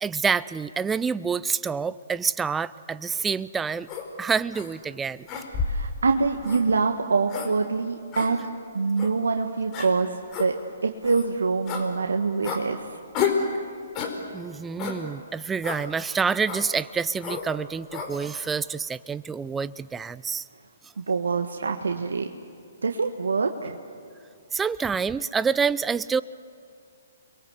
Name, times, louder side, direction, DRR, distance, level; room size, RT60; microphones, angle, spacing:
voice 1, 0.0-3.9 4.2-5.3 14.3-20.5 24.5-26.2, right 5 dB, 10° right, 17 dB, 0.6 m, -27 dB
sound 1, 3.9-4.1 4.5-4.7 5.3-5.9 6.4-6.6 7.3-7.5 8.1-8.3 9.0-9.1 9.7-9.9 10.3-10.5 11.0-11.3 11.7-11.9 12.4-12.6 13.1-13.4 13.9-14.2 14.8-15.0 15.6-15.8 16.4-16.7 17.2-17.5 17.9-18.1, left 6 dB, 30° left, 4.6 m, -30 dB
voice 2, 5.6-8.4 8.7-10.5 10.8-12.8 21.0-22.3 22.8-23.8, right 4 dB, 80° right, 4 dB, 1.5 m, -25 dB
29.5 x 23.0 x 8.1 m, 2.4 s
hypercardioid pair, 130°, 0 cm